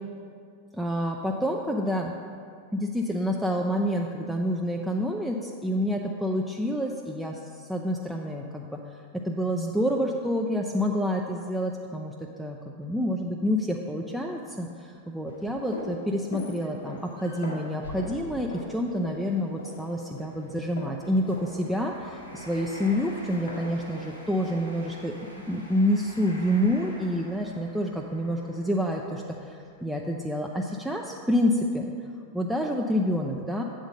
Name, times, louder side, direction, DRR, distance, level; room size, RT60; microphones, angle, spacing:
voice 1, 0.7-2.1 2.7-8.9 9.2-25.1 25.5-31.9 32.3-33.6, equal, 5° right, 0 dB, 0.4 m, -28 dB
sound 1, 14.7-14.9 15.5-15.6 16.7-16.9 17.1-17.3 18.0-30.7 31.3-31.4, equal, 85° left, 1.5 m, -48 dB
sound 2, 15.3-24.6, left 2 dB, 70° left, 0.9 m, -41 dB
7.9 x 3.8 x 6.7 m, 2.3 s
figure-of-eight pair, 90°, 0 cm